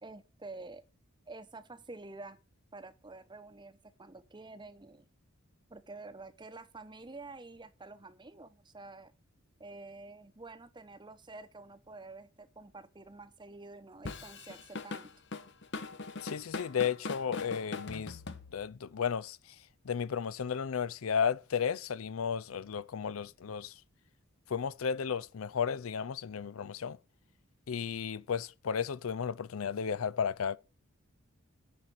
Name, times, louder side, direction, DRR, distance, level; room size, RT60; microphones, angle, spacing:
voice 1, 0.0-0.8 1.3-2.4 2.7-5.0 5.7-9.1 9.6-15.1, right 3 dB, 20° right, 0.9 m, -49 dB
Drum kit / Drum, 14.0-18.9, left 3 dB, 55° left, 1.0 m, -41 dB
voice 2, 16.2-18.2 18.5-19.4 19.8-23.7 24.5-27.0 27.7-30.6, left 7 dB, 85° left, 0.5 m, -33 dB
9.9 x 5.9 x 6.6 m
head